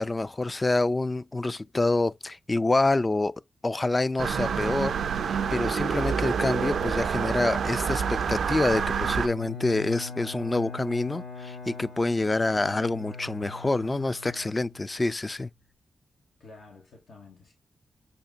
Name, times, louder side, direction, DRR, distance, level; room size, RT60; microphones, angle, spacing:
voice 1, 0.0-3.3 3.6-5.0 5.3-15.5, left 2 dB, 25° left, 0.3 m, -27 dB
sound 1, 4.2-9.3, right 6 dB, 90° right, 0.4 m, -27 dB
Bowed string instrument, 8.5-15.1, left 4 dB, 70° left, 1.8 m, -42 dB
voice 2, 16.4-17.5, left 3 dB, 85° left, 1.5 m, -51 dB
6.8 x 2.9 x 2.4 m
cardioid pair, 85°, 0 cm